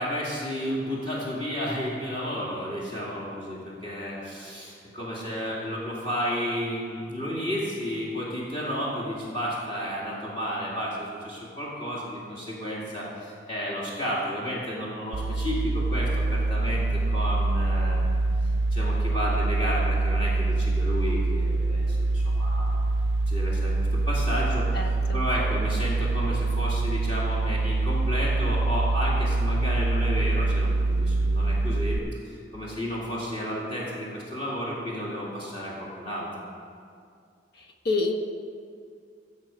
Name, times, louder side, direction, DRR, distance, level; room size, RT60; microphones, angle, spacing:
voice 1, 0.0-18.1 18.7-22.7 23.3-36.3, equal, 30° left, -6 dB, 2.1 m, -32 dB
sound 1, 15.1-32.0, right 2 dB, 70° right, 0.4 m, -25 dB
voice 2, 24.7-25.2 37.6-38.1, left 3 dB, 60° left, 3 dB, 1.1 m, -28 dB
16.0 x 7.1 x 5.1 m, 2.3 s
head